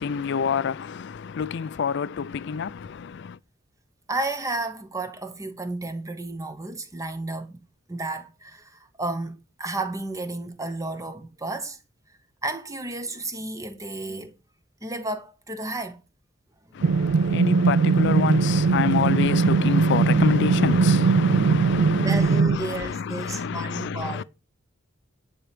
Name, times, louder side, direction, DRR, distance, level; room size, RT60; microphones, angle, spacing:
voice 1, 0.0-3.4 16.7-24.2, left 6 dB, 60° left, 0.4 m, -27 dB
voice 2, 4.1-7.6 7.9-11.8 12.4-14.3 14.8-16.0 22.0-24.2, right 2 dB, 15° right, 1.0 m, -32 dB
sound 1, 16.8-22.6, right 4 dB, 75° right, 0.4 m, -20 dB
10.0 x 4.4 x 5.2 m
head